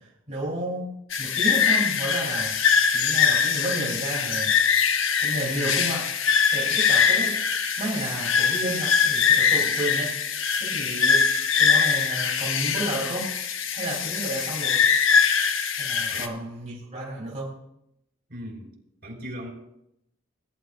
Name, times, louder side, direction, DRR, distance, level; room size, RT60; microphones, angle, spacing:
voice 1, 0.0-2.6 2.9-4.6 5.2-7.4 7.8-10.2 10.6-11.3 11.6-13.3 13.7-14.8 15.7-17.5, right 1 dB, 35° right, -5 dB, 3.5 m, -32 dB
sound 1, 1.1-16.3, left 6 dB, 70° left, 1.0 m, -23 dB
voice 2, 18.3-18.7 19.0-19.5, equal, 60° right, -2 dB, 4.6 m, -38 dB
20.0 x 11.5 x 2.6 m, 0.80 s
head